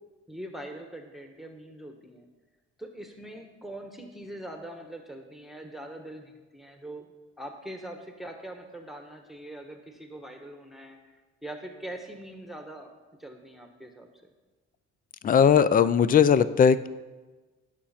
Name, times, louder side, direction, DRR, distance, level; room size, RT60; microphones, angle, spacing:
voice 1, 0.3-2.2 2.8-7.1 7.4-12.9 13.2-14.3, right 1 dB, ahead, 3 dB, 1.2 m, -42 dB
voice 2, 15.2-16.9, left 7 dB, 30° left, 15 dB, 0.4 m, -19 dB
16.0 x 6.3 x 4.3 m, 1.3 s
cardioid pair, 90°, 30 cm